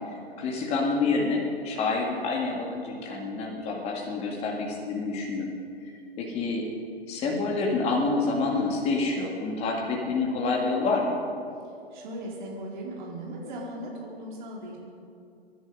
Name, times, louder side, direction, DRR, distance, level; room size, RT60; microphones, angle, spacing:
voice 1, 0.4-5.5 6.2-6.7 7.1-11.2, left 3 dB, 20° left, -1 dB, 2.0 m, -27 dB
voice 2, 11.9-14.8, right 1 dB, 45° right, -3 dB, 4.1 m, -38 dB
24.0 x 10.5 x 5.4 m, 2.5 s
hypercardioid pair, 135°, 32 cm